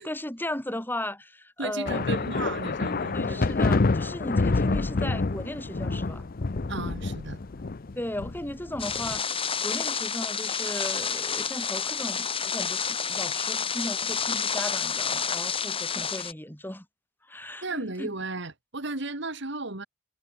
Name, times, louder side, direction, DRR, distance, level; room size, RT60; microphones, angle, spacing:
voice 1, 0.0-2.0 3.1-6.3 7.9-16.8 17.3-18.1, left 1 dB, 10° left, 3.3 m, -36 dB
voice 2, 1.6-3.8 4.4-4.5 6.7-7.4 17.6-19.9, right 2 dB, 60° right, 2.8 m, -35 dB
sound 1, 1.9-9.2, left 3 dB, 45° left, 0.6 m, -27 dB
sound 2, 8.8-16.3, left 6 dB, 30° left, 5.2 m, -29 dB
head